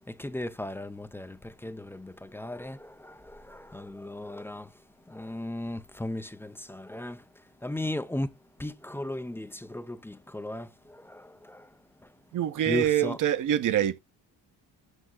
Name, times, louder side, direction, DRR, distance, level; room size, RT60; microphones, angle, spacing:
voice 1, 0.2-1.4 1.6-3.1 3.5-4.7 5.1-7.2 7.6-8.3 8.6-10.7 11.1-11.2 11.5-11.6 12.7-13.2, left 1 dB, 5° left, 0.3 m, -35 dB
voice 2, 12.3-14.0, right 11 dB, 45° right, 0.7 m, -25 dB
7.9 x 6.2 x 2.4 m
cardioid pair, 120°, 43 cm